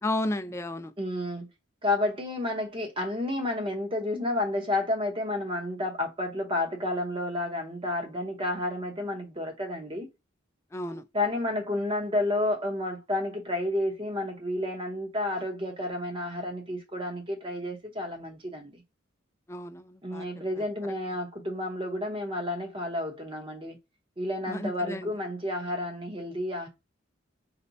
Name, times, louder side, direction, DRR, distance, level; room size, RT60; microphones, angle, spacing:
voice 1, 0.0-0.9 10.7-11.0 19.5-20.3 20.6-20.7 24.5-25.1, left 1 dB, 15° left, 0.3 m, -33 dB
voice 2, 1.0-1.5 1.8-10.1 10.9-18.8 20.0-23.8 24.2-26.7, left 1 dB, 25° right, 0.9 m, -31 dB
4.2 x 2.1 x 2.6 m
head